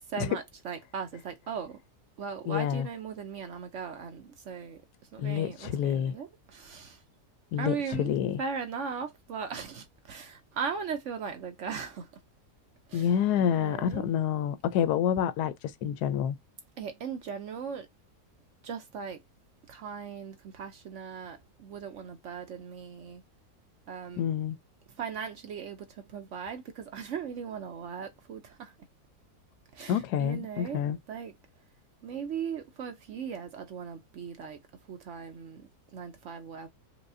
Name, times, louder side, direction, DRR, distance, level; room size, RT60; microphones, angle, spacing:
voice 1, 0.1-1.8 2.2-4.8 5.1-7.0 7.6-12.1 12.9-13.1 13.4-14.1 16.8-17.9 18.6-19.2 19.7-23.2 23.9-24.3 25.0-28.7 29.7-30.8 31.1-31.4 32.0-34.6 34.9-36.7, right 6 dB, 65° right, 0.8 m, -38 dB
voice 2, 2.5-2.9 5.2-6.1 7.5-8.4 12.9-16.4 24.2-24.6 29.9-31.0, left 9 dB, 85° left, 1.1 m, -28 dB
4.7 x 2.2 x 2.5 m
omnidirectional pair, 1.7 m